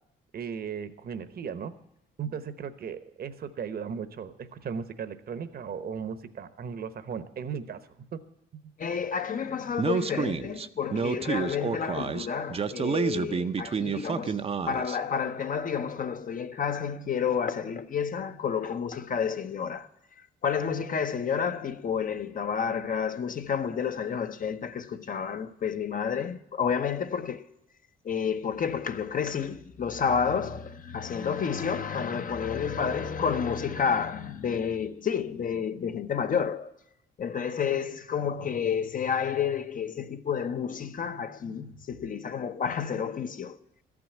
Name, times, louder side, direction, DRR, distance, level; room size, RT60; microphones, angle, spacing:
voice 1, 0.3-1.7 2.2-7.8 8.1-8.2 8.5-8.7, right 7 dB, 50° right, 0.9 m, -36 dB
voice 2, 8.8-19.9 20.4-27.4 28.0-36.7 37.2-43.6, left 7 dB, 45° left, 0.7 m, -30 dB
Speech, 9.8-15.0, right 5 dB, 30° right, 0.5 m, -29 dB
13.5 x 6.1 x 8.5 m
cardioid pair, 90°, 20 cm